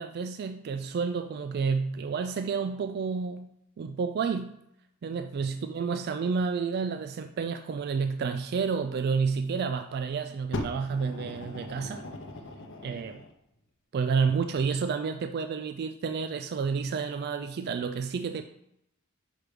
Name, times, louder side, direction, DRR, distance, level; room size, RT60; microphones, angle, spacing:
voice 1, 0.0-4.6 5.0-12.0 12.8-13.2 13.9-18.4, right 5 dB, 50° right, 8 dB, 0.3 m, -30 dB
Fire, 10.5-13.3 14.2-14.3, left 1 dB, 60° left, 0.7 m, -38 dB
6.0 x 3.3 x 4.9 m, 0.80 s
head